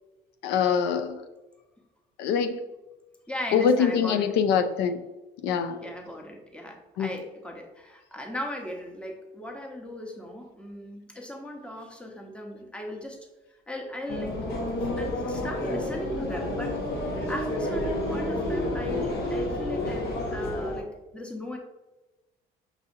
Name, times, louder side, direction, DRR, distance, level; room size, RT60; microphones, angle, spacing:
voice 1, 0.4-1.2 2.2-2.6 3.5-5.0 5.4-5.8 7.0-7.1, left 6 dB, 90° left, 8 dB, 0.4 m, -24 dB
voice 2, 3.3-4.2 5.8-13.2 13.7-14.4 15.0-21.6, left 1 dB, 5° left, 1 dB, 0.8 m, -37 dB
sound 1, 14.1-20.8, left 1 dB, 70° left, 1.1 m, -30 dB
6.0 x 2.7 x 2.6 m, 1.0 s
cardioid pair, 110°, 17 cm